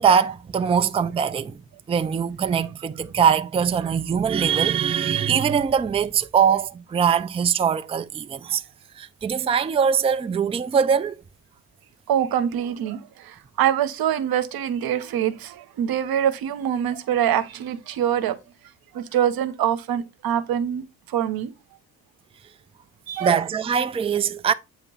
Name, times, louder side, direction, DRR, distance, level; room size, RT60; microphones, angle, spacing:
voice 1, 0.0-1.6 1.9-8.6 9.0-11.1 23.2-24.5, right 7 dB, 15° right, 0.4 m, -22 dB
voice 2, 12.1-18.4 18.9-21.5 23.1-23.4, right 10 dB, 85° right, 0.9 m, -24 dB
8.3 x 3.0 x 5.3 m
cardioid pair, 140°, 35 cm